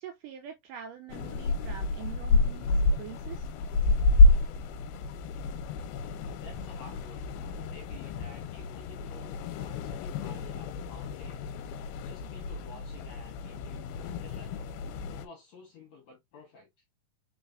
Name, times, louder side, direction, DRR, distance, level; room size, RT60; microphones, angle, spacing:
voice 1, 0.0-3.5, right 10 dB, 85° right, 1.8 m, -44 dB
sound 1, 1.1-15.3, left 3 dB, 90° left, 2.5 m, -28 dB
voice 2, 6.4-11.5 12.0-14.8 15.1-16.7, left 4 dB, 70° left, 1.8 m, -52 dB
4.6 x 4.1 x 2.4 m
omnidirectional pair, 4.3 m